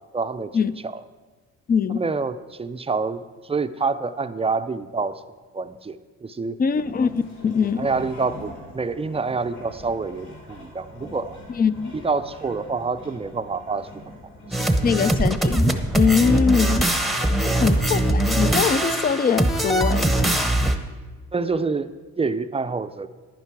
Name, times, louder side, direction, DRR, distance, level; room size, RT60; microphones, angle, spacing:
voice 1, 0.1-0.5 0.8-1.0 1.9-5.2 5.5-6.6 7.8-11.4 11.9-13.9 14.5-14.6 17.4-17.6 21.3-23.1, right 4 dB, 20° right, 11 dB, 0.5 m, -27 dB
voice 2, 1.7-2.0 6.6-7.9 11.6-12.0 14.8-16.9 17.6-20.1, left 6 dB, 30° left, 16 dB, 0.5 m, -22 dB
sound 1, 6.7-18.6, left 1 dB, 85° left, 4.0 m, -42 dB
sound 2, 14.5-20.8, right 1 dB, ahead, 0.9 m, -21 dB
10.5 x 10.0 x 4.8 m, 1.4 s
cardioid pair, 90°, 30 cm